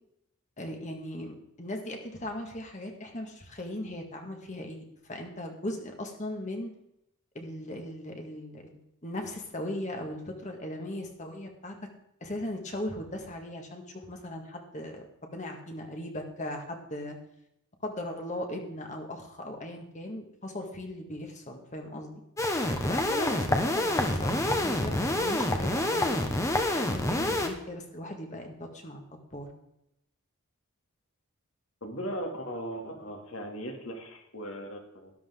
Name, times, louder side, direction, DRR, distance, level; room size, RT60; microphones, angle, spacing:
voice 1, 0.6-6.7 7.3-11.7 12.2-15.1 15.3-17.2 17.8-22.2 22.7-26.3 26.7-29.5, left 1 dB, 35° left, 3 dB, 1.9 m, -38 dB
sound 1, 22.4-27.5, left 1 dB, 15° left, 1.3 m, -27 dB
voice 2, 31.8-35.1, equal, 65° left, 1 dB, 2.8 m, -38 dB
13.0 x 12.5 x 3.8 m, 0.80 s
head